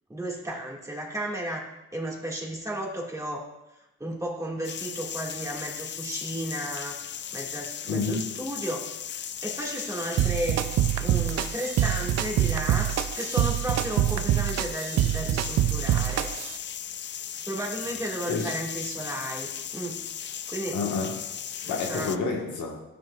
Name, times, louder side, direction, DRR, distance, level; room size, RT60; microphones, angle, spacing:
voice 1, 0.1-1.7 1.9-3.5 4.0-7.0 7.3-8.9 9.1-10.7 11.0-16.3 17.4-19.5 19.7-20.0 20.5-20.8 21.6-22.2, right 1 dB, 10° right, -3 dB, 2.0 m, -34 dB
sound 1, 4.6-22.2, left 9 dB, 40° left, 0.4 m, -37 dB
voice 2, 7.9-8.2 18.3-18.6 20.7-21.2 21.7-22.8, left 4 dB, 75° left, 0 dB, 1.6 m, -29 dB
sound 2, 10.2-16.6, right 13 dB, 60° right, 0.5 m, -25 dB
13.5 x 6.1 x 2.4 m, 0.98 s
cardioid pair, 90°, 30 cm